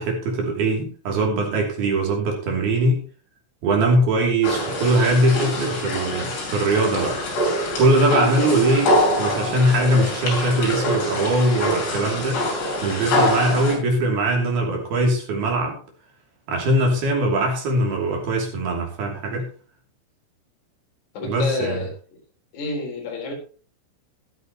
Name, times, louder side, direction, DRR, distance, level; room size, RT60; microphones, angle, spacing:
voice 1, 0.0-3.1 3.6-7.2 7.8-12.4 12.8-15.8 16.5-19.5 21.2-21.8, right 1 dB, 55° right, 1 dB, 4.5 m, -21 dB
sound 1, 4.4-13.8, left 1 dB, 65° left, 8.6 m, -24 dB
voice 2, 21.1-21.9 22.5-23.3, left 3 dB, 40° left, -1 dB, 5.0 m, -28 dB
14.5 x 12.5 x 3.0 m, 0.38 s
omnidirectional pair, 5.4 m